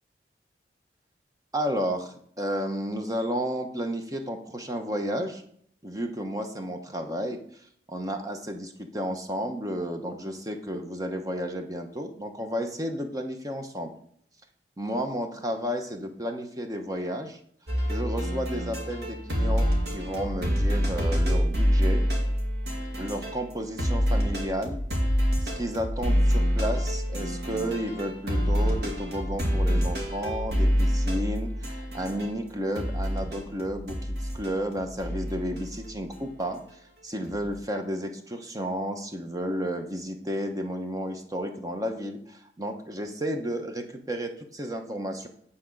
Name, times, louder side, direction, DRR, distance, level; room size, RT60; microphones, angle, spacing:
voice 1, 1.5-5.4 5.8-7.4 7.9-13.9 14.8-17.4 17.9-22.0 23.0-24.8 25.4-45.3, equal, 20° right, 5 dB, 0.9 m, -32 dB
sound 1, 17.7-23.5 23.8-32.4 32.7-35.9 37.2-37.5, equal, 65° right, 2.0 m, -27 dB
9.3 x 4.3 x 6.2 m, 0.66 s
head